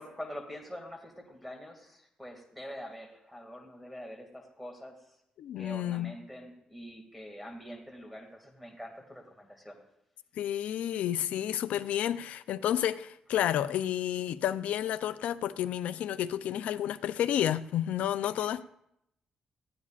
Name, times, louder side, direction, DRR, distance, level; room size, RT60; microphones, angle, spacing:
voice 1, 0.0-5.0 5.6-9.8 18.4-18.5, equal, ahead, 2.3 m, -45 dB
voice 2, 5.4-6.2 10.4-18.6, left 11 dB, 85° left, 0.5 m, -31 dB
19.5 x 15.0 x 2.5 m
cardioid pair, 85°, 2 cm